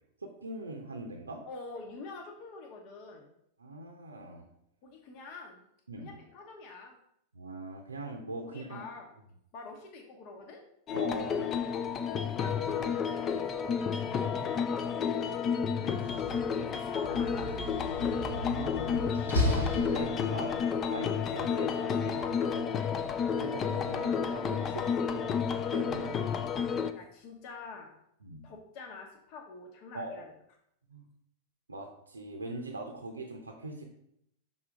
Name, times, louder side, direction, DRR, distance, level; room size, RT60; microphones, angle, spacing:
voice 1, 0.2-1.4 3.6-4.5 5.9-6.1 7.3-8.8 10.9-11.5 15.8-16.4 18.0-22.8 23.4-24.8 25.1-26.4 28.2-28.4 29.9-30.2 30.9-31.0 31.7-33.8, right 2 dB, 75° right, 2 dB, 0.7 m, -41 dB
voice 2, 1.4-3.3 4.8-5.7 6.0-7.0 8.4-9.1 9.5-10.6 12.0-15.4 16.5-17.5 24.6-24.8 26.9-27.9 28.4-30.3, left 4 dB, 45° left, 2 dB, 1.0 m, -46 dB
sound 1, 10.9-26.9, left 7 dB, 25° left, 0.4 m, -31 dB
Slam, 15.9-20.6, left 1 dB, 75° left, 1.7 m, -35 dB
6.0 x 4.0 x 5.0 m, 0.74 s
figure-of-eight pair, 90°, 0 cm